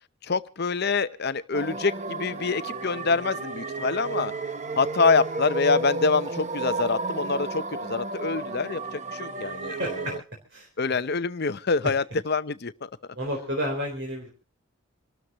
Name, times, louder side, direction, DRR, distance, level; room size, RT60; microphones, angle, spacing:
voice 1, 0.2-4.3 4.8-9.8 10.8-12.9, left 4 dB, 50° left, 14 dB, 0.7 m, -26 dB
sound 1, 1.5-10.2, right 2 dB, 35° right, 0.8 m, -32 dB
voice 2, 9.7-10.2 10.5-10.7 11.8-11.9 13.1-14.3, equal, 55° right, 0 dB, 4.0 m, -31 dB
28.0 x 13.0 x 3.0 m, 0.31 s
head